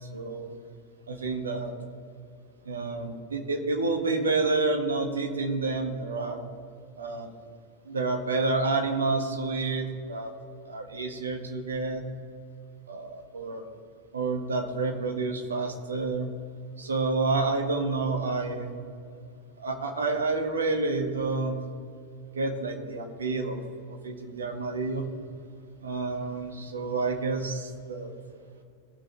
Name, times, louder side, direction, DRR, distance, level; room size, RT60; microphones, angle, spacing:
voice 1, 0.1-0.6 1.1-1.7 2.6-6.4 7.0-7.3 7.8-10.3 10.6-12.0 12.9-13.6 14.1-16.3 16.8-18.7 19.6-21.6 22.3-23.6 23.9-25.0 25.8-28.1, right 3 dB, 70° right, 3 dB, 1.6 m, -29 dB
18.5 x 6.4 x 3.6 m, 2.3 s
figure-of-eight pair, 90°, 0 cm